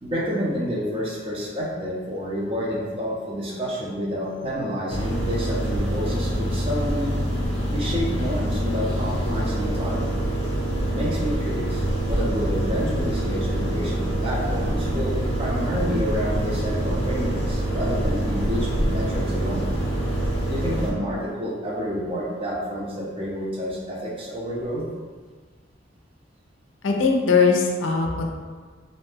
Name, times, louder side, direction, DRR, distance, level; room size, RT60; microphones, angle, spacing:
voice 1, 0.0-7.1 7.7-10.1 10.8-19.6 20.5-24.8, equal, 30° right, -4 dB, 0.5 m, -29 dB
sound 1, 4.9-20.9, right 1 dB, 30° left, 0.7 m, -25 dB
sound 2, 8.4-16.7, equal, 75° right, 0.9 m, -41 dB
voice 2, 26.8-28.3, left 4 dB, 85° left, 1 dB, 0.4 m, -20 dB
2.5 x 2.1 x 3.3 m, 1.5 s
head